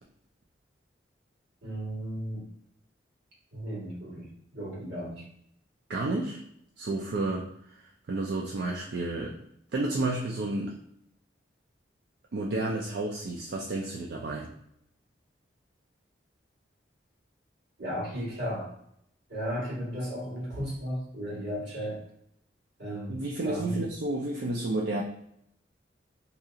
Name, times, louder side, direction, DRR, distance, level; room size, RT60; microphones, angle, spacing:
voice 1, 1.6-2.5 3.5-5.2 17.8-18.7 19.3-22.0 22.8-23.8, equal, 80° right, -6 dB, 1.4 m, -35 dB
voice 2, 5.9-6.4 6.8-9.3 9.7-10.7 12.3-14.5 23.1-25.0, right 2 dB, 60° right, -2 dB, 0.4 m, -31 dB
2.7 x 2.7 x 2.4 m, 0.72 s
head